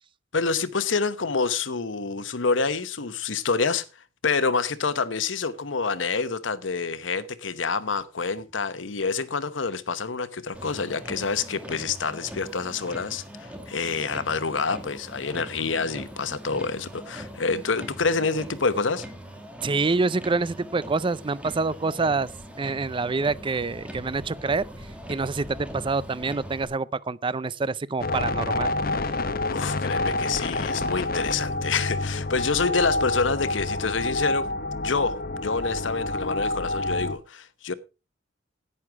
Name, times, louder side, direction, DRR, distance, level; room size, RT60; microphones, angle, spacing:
voice 1, 0.3-3.8 4.2-19.1 29.5-34.5 34.8-37.7, left 4 dB, 90° left, 1.0 m, -27 dB
Motor vehicle (road), 10.5-26.7, equal, 5° right, 2.1 m, -41 dB
voice 2, 19.6-22.3 22.6-24.6 25.1-28.7, right 3 dB, 25° right, 0.5 m, -26 dB
sound 1, 28.0-37.2, left 2 dB, 50° left, 1.0 m, -28 dB
11.0 x 9.3 x 4.7 m
head